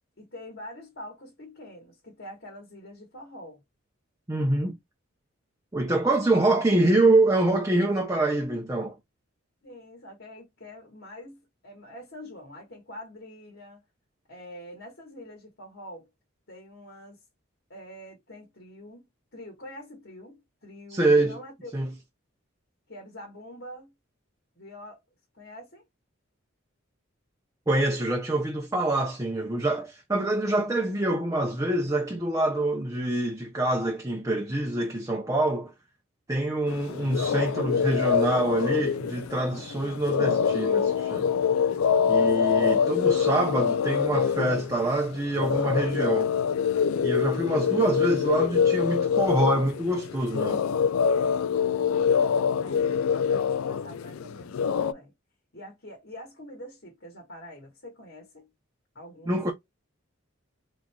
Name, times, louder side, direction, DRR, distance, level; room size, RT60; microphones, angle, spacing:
voice 1, 0.2-3.6 5.9-6.4 9.6-13.8 14.3-16.1 16.5-17.2 17.7-19.0 19.3-21.7 22.9-23.9 24.6-25.0 25.3-25.8 52.5-55.1 55.5-58.5 58.9-59.5, left 1 dB, 55° left, 1.3 m, -45 dB
voice 2, 4.3-4.8 5.7-9.0 20.9-21.4 21.7-21.9 27.7-35.7 36.3-41.3 42.1-46.3 47.0-50.7 59.3-59.5, right 2 dB, 15° right, 0.5 m, -25 dB
sound 1, 36.7-54.9, left 7 dB, 90° left, 0.3 m, -25 dB
3.7 x 3.0 x 2.2 m
head